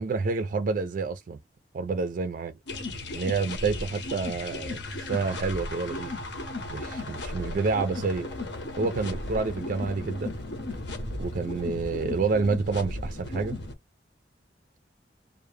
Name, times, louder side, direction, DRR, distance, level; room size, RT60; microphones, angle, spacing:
voice 1, 0.0-1.4 1.7-2.5 3.1-6.2 6.7-8.3 8.8-10.3 11.2-13.6, right 4 dB, 50° right, 0.3 m, -28 dB
sound 1, 2.7-13.7, left 2 dB, 80° left, 0.8 m, -35 dB
sound 2, 7.1-12.1, left 2 dB, 45° left, 0.7 m, -48 dB
2.1 x 2.0 x 3.1 m
head